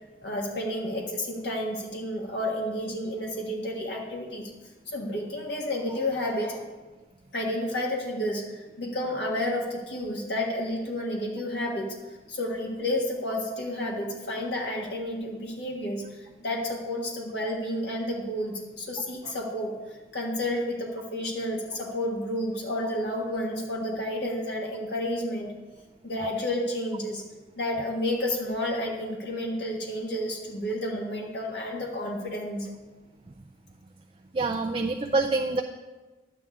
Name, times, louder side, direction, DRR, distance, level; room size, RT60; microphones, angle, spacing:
voice 1, 0.2-4.5 4.9-6.6 7.3-25.5 26.0-27.2 27.5-32.7, left 1 dB, 75° left, -1 dB, 1.5 m, -31 dB
voice 2, 34.3-35.6, right 3 dB, 30° right, 5 dB, 0.3 m, -26 dB
11.0 x 9.0 x 3.6 m, 1.2 s
head